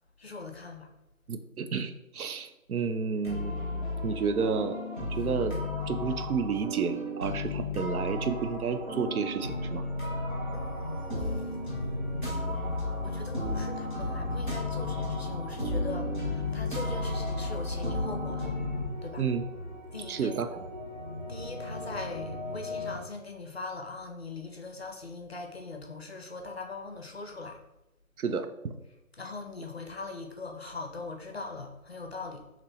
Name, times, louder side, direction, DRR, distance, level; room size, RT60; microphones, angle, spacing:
voice 1, 0.2-0.9 10.5-11.8 12.4-18.6 19.0-19.2 19.9-20.4 21.3-27.6 29.2-32.4, left 3 dB, 50° left, 3 dB, 0.5 m, -41 dB
voice 2, 1.3-5.6 5.9-9.9 19.2-19.4 20.1-20.6 28.2-28.8, right 5 dB, 85° right, 9 dB, 0.5 m, -31 dB
sound 1, 3.2-18.9, left 2 dB, 35° right, 1.0 m, -34 dB
sound 2, 8.3-23.0, left 1 dB, 20° left, 0.9 m, -39 dB
3.0 x 2.9 x 4.1 m, 0.93 s
figure-of-eight pair, 170°, 42 cm